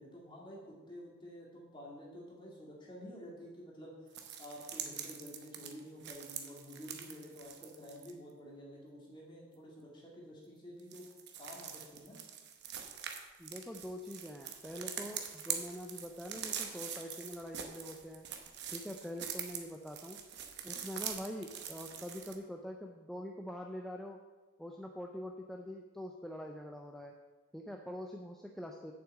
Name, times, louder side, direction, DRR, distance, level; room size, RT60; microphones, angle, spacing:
voice 1, 0.0-11.1 11.4-12.2, equal, 20° left, -3 dB, 2.2 m, -50 dB
sound 1, 4.1-8.1 10.8-22.3, right 8 dB, 50° right, 0.9 m, -44 dB
voice 2, 13.4-18.3 18.7-20.2 20.6-24.2 24.6-27.1 27.5-28.9, equal, ahead, 1 dB, 0.4 m, -44 dB
7.3 x 5.9 x 7.6 m, 1.3 s
head